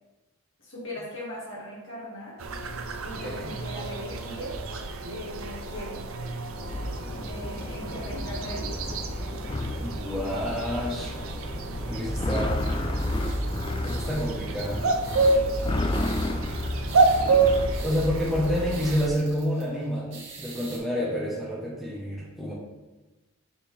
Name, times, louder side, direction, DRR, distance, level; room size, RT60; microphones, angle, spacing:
voice 1, 0.6-2.4 3.0-4.6 5.1-6.0 7.2-8.9, left 1 dB, 65° left, -6 dB, 2.2 m, -39 dB
sound 1, 2.4-19.1, right 3 dB, 85° right, 0.6 m, -29 dB
sound 2, 6.6-19.0, left 1 dB, 25° left, 0.4 m, -32 dB
voice 2, 9.8-11.1 11.8-12.6 13.8-14.9 17.8-22.5, equal, ahead, -7 dB, 1.1 m, -29 dB
sound 3, 12.5-20.8, right 4 dB, 60° right, 2.1 m, -46 dB
7.5 x 4.2 x 3.4 m, 1.1 s
head